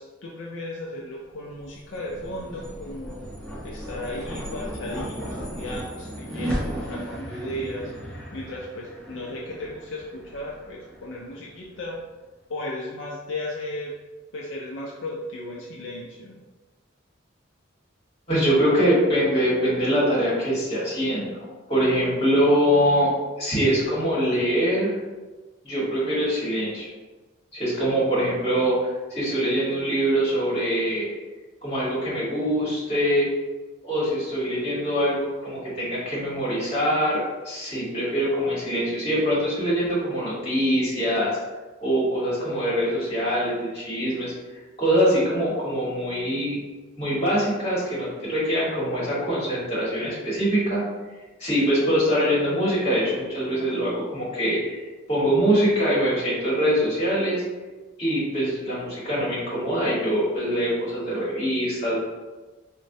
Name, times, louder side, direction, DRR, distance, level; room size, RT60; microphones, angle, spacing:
voice 1, 0.0-3.3 3.6-12.0 12.5-13.9 14.3-16.4, left 1 dB, 60° left, -3 dB, 0.4 m, -35 dB
sound 1, 1.4-12.0, equal, ahead, 1.0 m, -36 dB
voice 2, 18.3-23.1 23.4-24.9 25.6-26.9 27.5-31.1 31.6-33.3 33.8-35.2 35.4-41.3 41.8-44.3 44.8-46.6 47.0-50.8 51.4-54.8 55.1-57.4 58.0-62.0, equal, 30° left, -8 dB, 1.3 m, -23 dB
3.9 x 2.1 x 2.6 m, 1.2 s
head